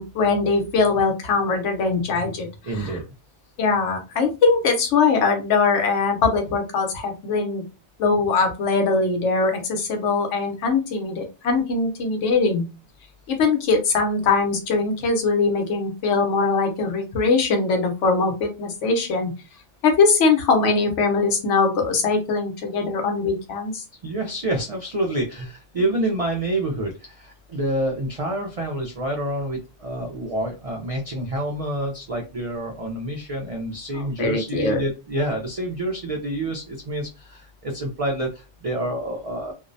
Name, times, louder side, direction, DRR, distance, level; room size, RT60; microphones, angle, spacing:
voice 1, 0.0-2.5 2.7-2.9 3.6-7.6 8.0-12.6 13.3-19.3 19.8-23.8 33.9-34.8, left 4 dB, 80° left, 4 dB, 1.0 m, -21 dB
voice 2, 2.6-3.0 24.0-39.5, right 1 dB, 65° right, 1 dB, 0.3 m, -27 dB
2.6 x 2.0 x 2.5 m, 0.29 s
omnidirectional pair, 1.2 m